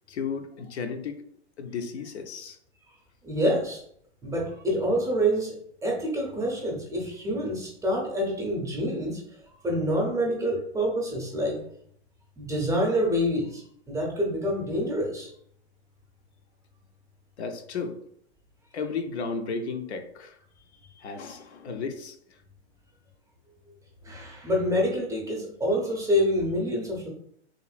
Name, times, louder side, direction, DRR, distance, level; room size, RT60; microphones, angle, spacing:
voice 1, 0.1-1.2 1.6-2.6 17.4-18.0 18.7-20.4 21.0-22.2, left 5 dB, 75° left, 6 dB, 0.6 m, -34 dB
voice 2, 3.2-3.8 4.2-5.5 5.8-9.2 9.6-11.6 12.4-13.6 13.9-15.3 24.0-27.1, equal, 10° right, -1 dB, 0.6 m, -27 dB
3.0 x 2.6 x 2.4 m, 0.65 s
hypercardioid pair, 120°, 33 cm